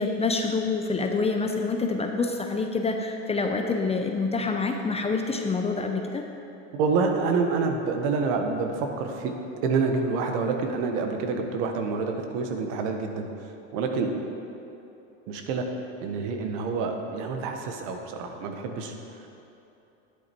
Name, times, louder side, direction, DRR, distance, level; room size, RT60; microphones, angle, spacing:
voice 1, 0.0-6.3, left 4 dB, 15° left, 4 dB, 0.7 m, -27 dB
voice 2, 6.7-9.3 9.6-13.3 13.7-14.1 15.3-15.7 16.0-19.3, right 4 dB, 65° right, 4 dB, 1.4 m, -27 dB
10.5 x 8.8 x 4.5 m, 3.0 s
supercardioid pair, 110°, 39 cm